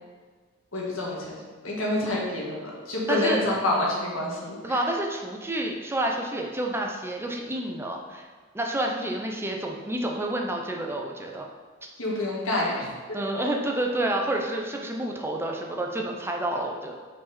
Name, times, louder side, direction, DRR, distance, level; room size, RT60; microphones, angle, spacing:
voice 1, 0.7-1.4 1.6-4.8 12.0-12.9, left 1 dB, 80° left, -3 dB, 1.8 m, -27 dB
voice 2, 3.1-3.4 4.6-8.3 8.5-11.4 13.1-17.0, right 1 dB, 10° right, 1 dB, 0.7 m, -29 dB
5.6 x 5.0 x 4.2 m, 1.5 s
head